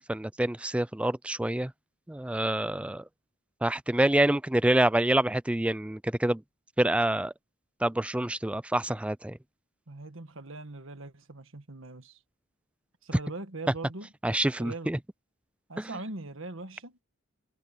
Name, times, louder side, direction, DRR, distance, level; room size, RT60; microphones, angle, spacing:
voice 1, 0.0-1.7 2.1-3.0 3.6-6.4 6.8-7.3 7.8-9.4 14.2-15.0 15.8-15.9, right 1 dB, 5° right, 0.3 m, -27 dB
voice 2, 9.9-12.2 13.0-14.1 14.6-14.9 15.7-17.0, right 2 dB, 60° right, 1.7 m, -41 dB
head